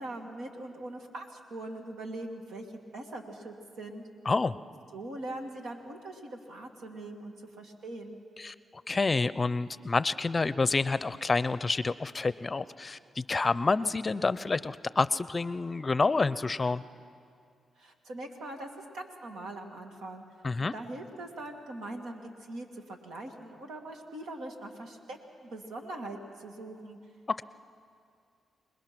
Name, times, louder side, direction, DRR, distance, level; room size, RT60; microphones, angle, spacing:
voice 1, 0.0-2.7 2.9-4.0 4.9-8.2 17.8-20.2 20.6-27.0, right 2 dB, 85° right, 2 dB, 2.2 m, -42 dB
voice 2, 4.3-4.6 8.4-8.5 8.9-16.8 20.4-20.7 27.3-27.4, left 3 dB, 35° left, 16 dB, 0.5 m, -28 dB
27.0 x 20.5 x 6.1 m, 2.3 s
cardioid pair, 65°, 0 cm